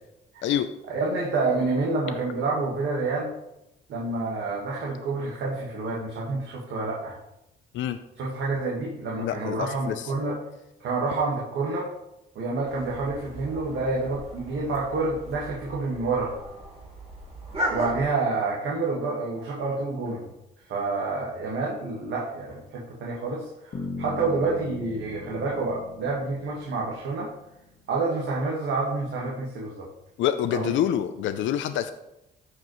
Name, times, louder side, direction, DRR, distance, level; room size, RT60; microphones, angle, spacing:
voice 1, 0.9-3.3 3.9-7.2 8.2-10.4 10.8-11.9 12.4-16.3 17.7-20.3 20.7-27.3 27.9-29.9 30.5-30.7, right 3 dB, 70° right, -4 dB, 1.7 m, -28 dB
voice 2, 9.2-10.1 30.2-31.9, left 10 dB, 75° left, 10 dB, 0.5 m, -26 dB
sound 1, 12.6-18.0, right 1 dB, 30° right, 3.0 m, -36 dB
Bass guitar, 23.7-27.7, left 3 dB, 55° left, 1.6 m, -39 dB
14.0 x 5.1 x 3.1 m, 0.89 s
cardioid pair, 90°, 20 cm